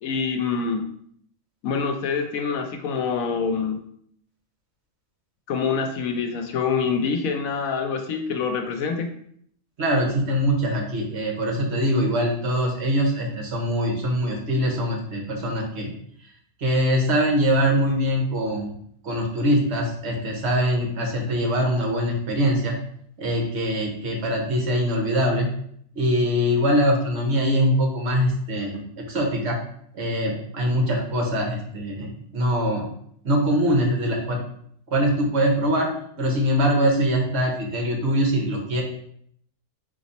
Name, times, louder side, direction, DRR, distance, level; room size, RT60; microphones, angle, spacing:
voice 1, 0.0-0.8 1.6-3.8 5.5-9.1, left 5 dB, 90° left, 5 dB, 1.1 m, -25 dB
voice 2, 9.8-15.9 16.6-18.7 19.0-22.8 23.2-25.5 25.9-29.6 29.9-32.8 33.2-34.4 34.9-35.9 36.2-38.8, equal, 55° right, 0 dB, 1.2 m, -23 dB
4.0 x 2.9 x 4.1 m, 0.66 s
omnidirectional pair, 1.4 m